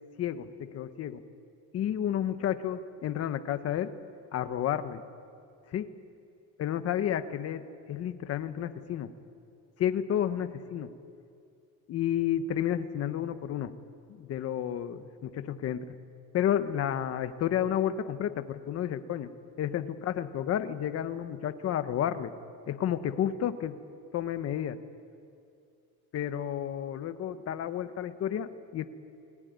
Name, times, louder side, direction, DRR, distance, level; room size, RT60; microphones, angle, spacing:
voice 1, 0.2-1.2 1.7-3.9 4.3-5.0 5.7-5.9 6.6-9.1 9.8-10.9 11.9-13.7 14.2-15.8 16.3-19.3 19.6-22.3 22.7-23.8 24.1-24.8 26.1-28.9, left 10 dB, 40° left, 10 dB, 1.2 m, -31 dB
28.5 x 20.0 x 9.5 m, 2.4 s
cardioid pair, 165°, 37 cm